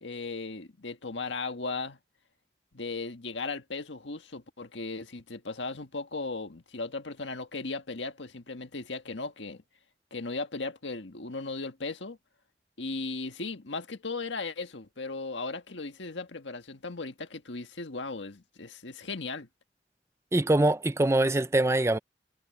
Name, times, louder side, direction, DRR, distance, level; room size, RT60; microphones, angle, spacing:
voice 1, 0.0-2.0 2.7-9.6 10.1-12.2 12.8-19.5, left 3 dB, 80° left, 1.6 m, -37 dB
voice 2, 20.3-22.0, right 2 dB, 15° right, 0.5 m, -23 dB
head